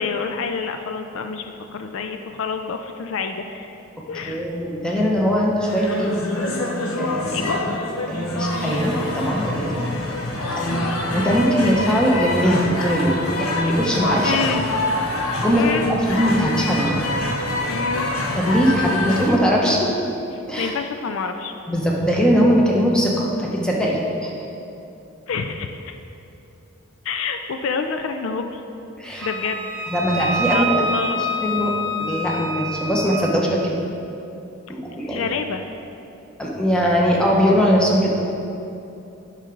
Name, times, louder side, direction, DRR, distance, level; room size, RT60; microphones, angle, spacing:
voice 1, 0.0-3.8 4.1-4.5 7.3-7.6 10.6-11.0 14.2-14.7 15.5-15.9 17.6-18.1 20.6-21.5 25.3-26.0 27.0-28.6 29.2-29.7 30.5-31.3 35.0-35.6, left 5 dB, 70° left, 7 dB, 0.4 m, -28 dB
voice 2, 4.3-6.1 7.0-7.4 8.1-9.9 10.6-14.4 15.4-15.7 16.1-17.1 18.4-19.9 20.5-20.7 21.7-24.3 29.0-29.3 29.9-30.7 31.1-31.7 32.0-33.7 34.7-35.3 36.4-38.1, equal, 5° left, -3 dB, 0.9 m, -20 dB
sound 1, 5.7-19.4, left 2 dB, 90° left, 0.9 m, -26 dB
Wind instrument woodwind instrument, 29.2-33.3, equal, 50° right, 0.9 m, -27 dB
9.0 x 5.6 x 3.9 m, 2.8 s
head